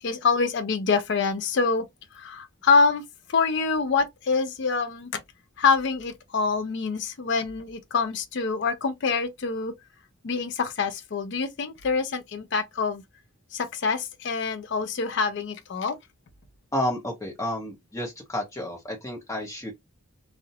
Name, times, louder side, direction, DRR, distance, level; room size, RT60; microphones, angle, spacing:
voice 1, 0.0-1.8 2.1-3.0 3.3-5.2 5.6-9.7 10.2-13.0 13.5-16.0, left 4 dB, 50° left, 0.4 m, -25 dB
voice 2, 16.7-19.7, left 1 dB, 15° left, 0.8 m, -31 dB
2.4 x 2.0 x 2.7 m
head